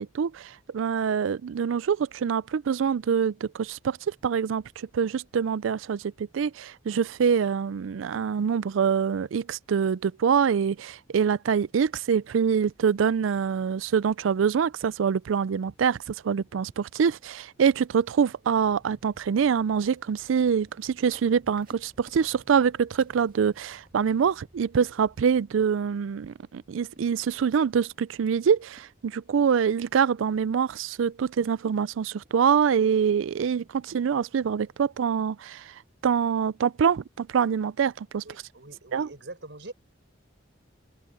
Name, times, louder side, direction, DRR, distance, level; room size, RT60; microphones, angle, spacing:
voice 1, 0.0-35.7 36.0-38.2 38.9-39.1, right 7 dB, 85° right, 0.4 m, -25 dB
sound 1, 18.6-25.7, equal, 20° right, 6.3 m, -60 dB
sound 2, 19.0-25.0 26.6-26.7 27.0-28.3 28.8-29.3 29.6-30.0 30.6-30.9 31.2-31.8 32.2-32.7 33.1-33.5 34.0-34.2 34.5-34.6, right 2 dB, 45° right, 2.3 m, -59 dB
voice 2, 38.2-39.7, right 2 dB, 65° right, 5.1 m, -43 dB
head